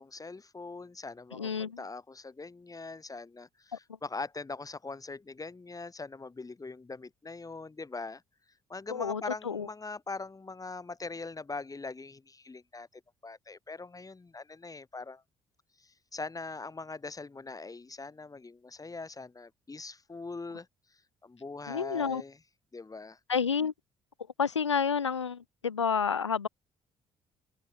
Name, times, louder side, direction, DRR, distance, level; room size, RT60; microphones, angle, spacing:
voice 1, 0.0-8.2 8.7-15.2 15.8-20.7 21.2-22.4 22.7-23.2, left 3 dB, 25° left, 5.8 m, -42 dB
voice 2, 1.3-1.8 3.7-3.8 8.9-9.7 21.7-22.2 23.3-23.7 24.4-26.5, left 6 dB, 90° left, 0.9 m, -30 dB
figure-of-eight pair, 45°, 15 cm